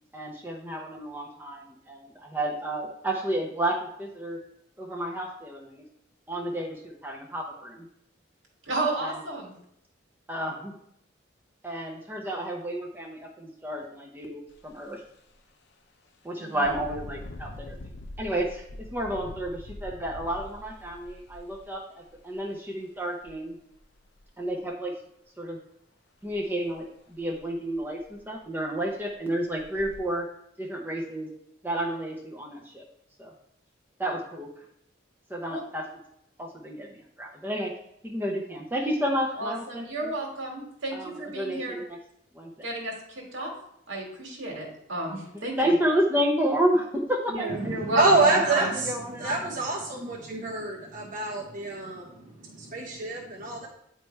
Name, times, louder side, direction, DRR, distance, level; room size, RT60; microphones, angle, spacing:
voice 1, 0.1-4.4 4.8-5.8 6.3-7.9 9.0-9.2 10.3-10.7 11.6-15.0 16.2-17.8 18.2-23.6 24.4-24.9 25.4-25.6 26.2-30.3 30.6-31.3 31.6-32.8 33.2-33.3 34.0-34.5 35.3-35.9 36.4-37.7 38.0-40.1 40.9-42.0 42.3-42.7 45.3-47.5 48.3-49.4, right 1 dB, 10° right, -1 dB, 0.6 m, -31 dB
voice 2, 8.7-9.5 16.4-16.6 35.5-35.6 39.4-41.8 42.6-43.5 43.9-45.7 47.3-48.7, right 2 dB, 75° right, -1 dB, 1.9 m, -32 dB
Engine, 14.5-14.7 15.2-15.3 16.6-22.3 23.2-23.3 23.8-24.5 26.3-26.4 26.8-26.9 27.4-27.5 27.8-28.3 28.8-29.0 29.6-30.0, left 1 dB, 55° left, 0.6 m, -43 dB
voice 3, 47.6-53.7, right 2 dB, 40° right, -2 dB, 0.8 m, -27 dB
9.1 x 3.2 x 4.5 m, 0.75 s
head